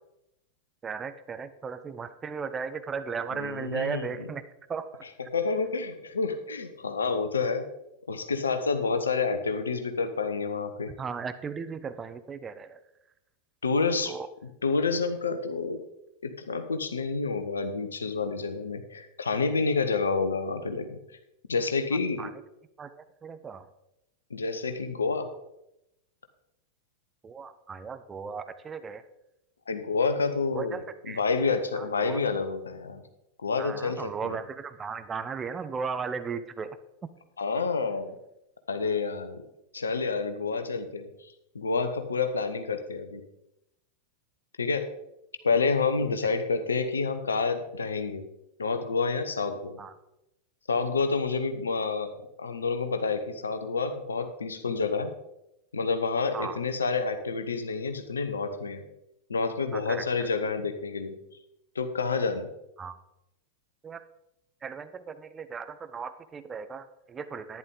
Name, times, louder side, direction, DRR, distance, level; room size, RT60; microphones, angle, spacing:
voice 1, 0.8-4.4 4.7-5.0 10.9-12.8 14.1-14.3 22.2-22.4 22.8-23.7 27.2-29.0 30.5-31.2 31.7-32.2 33.6-36.8 37.0-37.1 49.8-49.9 56.3-56.6 59.7-60.3 62.8-63.0 63.8-64.0 64.6-67.6, right 5 dB, 20° right, 11 dB, 0.7 m, -36 dB
voice 2, 3.3-4.2 5.3-7.7 8.1-10.9 13.6-14.1 14.6-15.8 16.2-21.0 21.5-22.3 24.3-25.3 29.7-30.8 31.1-33.0 33.4-34.4 37.4-38.2 38.7-39.4 39.7-43.2 44.6-44.9 45.4-48.2 48.6-49.8 50.7-55.1 55.7-58.8 59.3-61.2 61.7-62.5, left 4 dB, 75° left, 8 dB, 0.9 m, -29 dB
11.0 x 10.0 x 3.8 m, 0.87 s
figure-of-eight pair, 90°, 0 cm